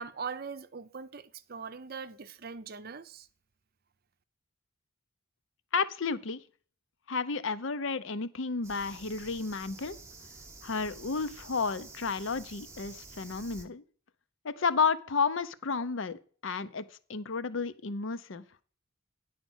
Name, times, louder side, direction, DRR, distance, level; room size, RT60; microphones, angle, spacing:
voice 1, 0.0-3.3, right 5 dB, 45° right, 0.6 m, -41 dB
voice 2, 5.7-6.4 7.1-10.0 10.6-13.8 14.4-16.8 17.1-18.4, left 5 dB, 60° left, 0.6 m, -32 dB
sound 1, 8.6-13.7, right 3 dB, 15° right, 0.9 m, -49 dB
10.0 x 5.1 x 6.2 m
head